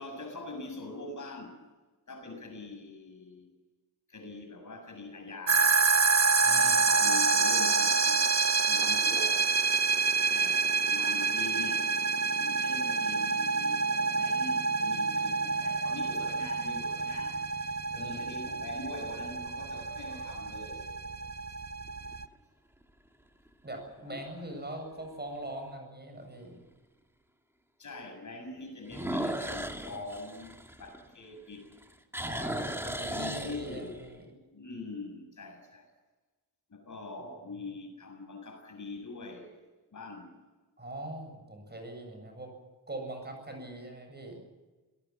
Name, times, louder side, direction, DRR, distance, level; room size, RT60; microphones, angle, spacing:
voice 1, 0.0-1.6 2.1-3.5 4.1-5.8 6.5-8.3 8.7-9.4 10.3-11.9 12.4-20.9 24.0-24.4 27.8-31.7 33.0-35.9 36.7-39.5 39.9-40.3, left 2 dB, 45° left, 5 dB, 7.1 m, -43 dB
sound 1, 5.5-22.3, right 4 dB, 40° right, 1.0 m, -27 dB
voice 2, 6.4-6.9 17.9-18.2 23.6-26.6 32.2-34.2 40.8-42.5 42.9-44.4, right 1 dB, 25° right, 4 dB, 7.8 m, -42 dB
sound 2, 15.2-15.9 16.6-16.7 21.9-22.3 22.8-22.9 23.5-23.6 23.8-23.9 25.4-25.5 28.9-31.4 31.7-34.1, right 1 dB, 5° right, 2.4 m, -36 dB
27.5 x 18.5 x 7.4 m, 1.2 s
wide cardioid pair, 130°, 40 cm